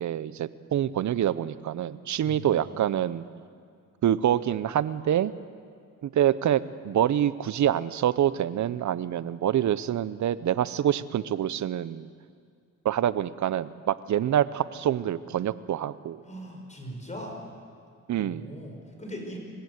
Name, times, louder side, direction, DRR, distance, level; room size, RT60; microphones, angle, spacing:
voice 1, 0.0-3.2 4.0-5.3 6.0-12.1 12.8-16.2 18.1-18.5, right 10 dB, 60° right, 16 dB, 0.7 m, -26 dB
voice 2, 2.2-2.9 16.3-17.4 18.2-19.4, equal, 20° left, 1 dB, 5.7 m, -40 dB
25.0 x 16.0 x 8.1 m, 2.2 s
cardioid pair, 85°, 33 cm